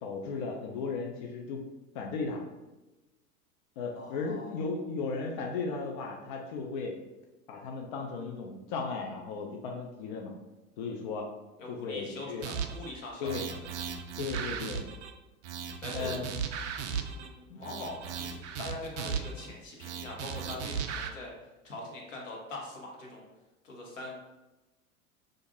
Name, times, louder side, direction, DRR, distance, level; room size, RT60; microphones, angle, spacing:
voice 1, 0.0-1.6 1.9-2.4 3.8-7.0 7.5-10.3 10.8-11.3 11.7-12.5 13.2-13.5 14.2-14.8 15.9-16.3 17.5-17.8, left 4 dB, 40° left, 1 dB, 0.4 m, -36 dB
voice 2, 3.9-4.6 11.6-13.4 15.8-16.2 16.8-21.3 21.6-23.2 23.6-24.1, left 2 dB, 65° left, -2 dB, 1.1 m, -42 dB
sound 1, 12.4-12.9 13.2-15.1 15.4-17.3 17.6-19.5 19.8-21.1, right 7 dB, 60° right, 0.5 m, -36 dB
2.5 x 2.5 x 3.8 m, 1.0 s
figure-of-eight pair, 85°, 41 cm